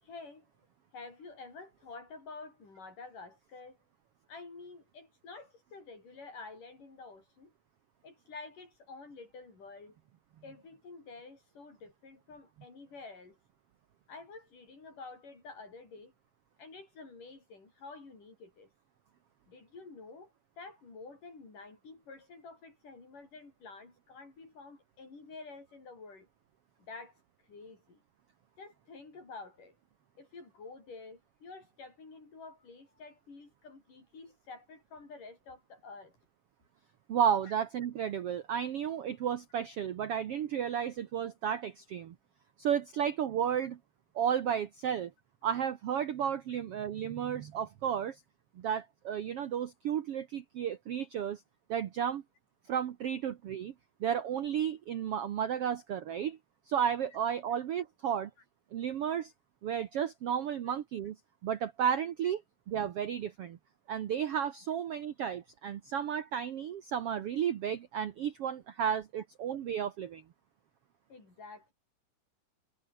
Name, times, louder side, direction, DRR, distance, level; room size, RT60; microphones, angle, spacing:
voice 1, 0.0-0.5 0.9-3.8 4.3-7.5 8.0-10.0 10.4-13.4 14.1-16.1 16.6-18.7 19.5-26.3 26.8-27.2 27.5-28.0 28.6-29.8 30.2-36.1 37.5-37.6 71.1-71.7, left 3 dB, 65° left, 9.0 m, -49 dB
voice 2, 37.1-42.1 42.6-43.8 44.1-45.1 45.4-48.2 48.6-51.4 51.7-52.2 52.7-53.7 54.0-56.4 56.7-58.3 58.7-59.3 59.6-61.2 61.4-62.4 62.7-63.6 63.9-70.2, right 8 dB, 65° right, 1.5 m, -33 dB
omnidirectional pair, 4.1 m